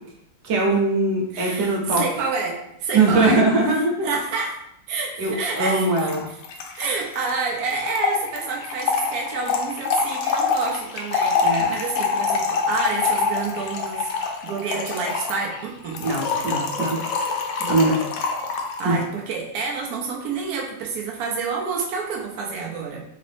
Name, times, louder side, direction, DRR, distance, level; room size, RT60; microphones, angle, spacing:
voice 1, 0.4-2.0 2.9-4.1 5.2-6.2 11.4-11.7 16.0-17.1 17.7-18.0 18.8-19.0, right 2 dB, 60° right, -1 dB, 1.2 m, -21 dB
voice 2, 1.3-3.4 4.0-4.6 4.9-6.1 6.7-16.1 17.6-17.9 18.8-23.0, right 4 dB, 80° right, -1 dB, 0.8 m, -28 dB
Trickle dribble / Fill (with liquid), 5.2-5.3 5.5-5.6 5.8-18.9, left 5 dB, 75° left, 1.1 m, -25 dB
3.6 x 2.5 x 3.4 m, 0.76 s
omnidirectional pair, 2.3 m